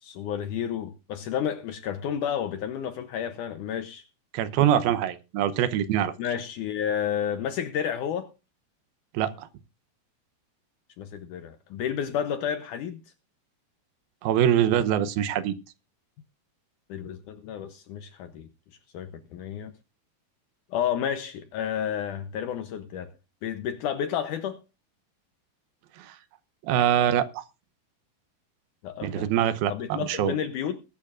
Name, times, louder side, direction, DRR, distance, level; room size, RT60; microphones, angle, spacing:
voice 1, 0.0-4.0 6.2-8.3 11.0-13.0 16.9-18.5 18.9-19.7 20.7-23.1 23.4-24.6 28.8-29.3 29.7-30.8, left 9 dB, 75° left, 1.9 m, -31 dB
voice 2, 4.3-6.1 9.1-9.5 14.2-15.6 26.0-26.2 26.6-27.4 29.0-30.3, right 10 dB, 80° right, 2.6 m, -24 dB
20.5 x 10.5 x 2.5 m
omnidirectional pair, 4.4 m